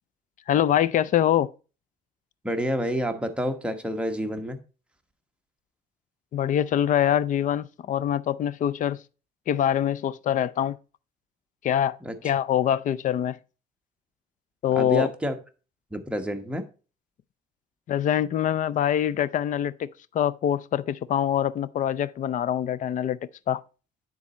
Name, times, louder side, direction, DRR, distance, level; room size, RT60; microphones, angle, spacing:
voice 1, 0.5-1.5 6.3-9.0 9.5-10.8 11.6-12.0 12.2-13.4 14.6-15.1 17.9-19.9 20.1-23.2 23.5-23.6, left 10 dB, 50° left, 0.5 m, -24 dB
voice 2, 2.4-4.6 12.0-12.2 14.7-15.4 15.9-16.6, equal, 5° right, 1.1 m, -28 dB
9.8 x 4.1 x 4.2 m
cardioid pair, 110°, 17 cm